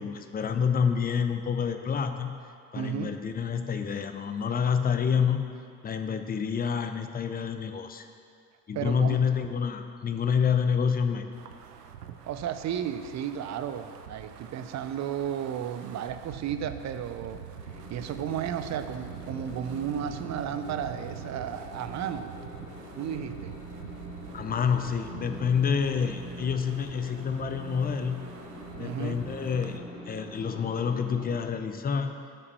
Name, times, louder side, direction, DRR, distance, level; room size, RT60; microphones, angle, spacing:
voice 1, 0.0-2.4 2.7-5.5 5.8-8.1 8.7-11.3 24.3-28.2 28.7-32.2, left 6 dB, 20° left, 8 dB, 0.6 m, -28 dB
voice 2, 2.7-3.2 8.7-9.2 12.3-17.4 17.7-22.3 23.0-23.6 28.8-29.2, right 9 dB, 35° right, 10 dB, 0.5 m, -33 dB
Wind, 11.3-29.8, right 9 dB, 85° right, 0.5 m, -45 dB
sound 1, 17.5-31.4, left 1 dB, 90° left, 1.1 m, -44 dB
6.7 x 5.4 x 6.7 m, 2.3 s
figure-of-eight pair, 50°, 47 cm